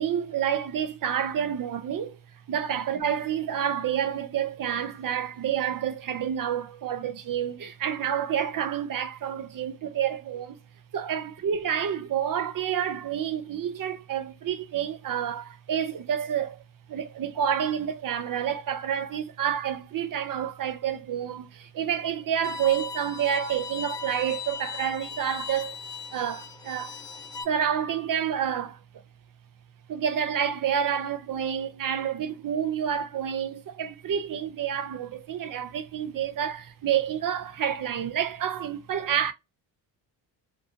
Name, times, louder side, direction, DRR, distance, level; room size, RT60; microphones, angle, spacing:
voice 1, 0.0-2.2 2.5-10.6 10.9-16.6 16.9-25.8 26.1-27.0 27.4-28.8 29.9-39.3, right 9 dB, 45° right, 0.6 m, -29 dB
Bowed string instrument, 22.4-27.4, left 5 dB, 10° left, 0.6 m, -38 dB
2.7 x 2.3 x 2.6 m
supercardioid pair, 75°, 47 cm